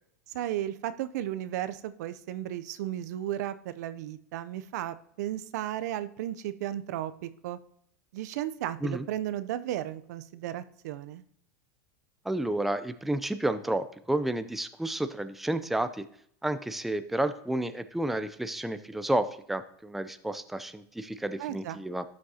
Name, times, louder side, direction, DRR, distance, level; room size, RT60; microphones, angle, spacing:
voice 1, 0.3-7.6 8.1-11.2 21.4-21.8, right 12 dB, 70° right, 13 dB, 0.6 m, -34 dB
voice 2, 12.3-16.1 16.4-22.0, right 1 dB, ahead, 11 dB, 0.4 m, -31 dB
12.5 x 6.3 x 2.8 m, 0.67 s
supercardioid pair, 125°, 9 cm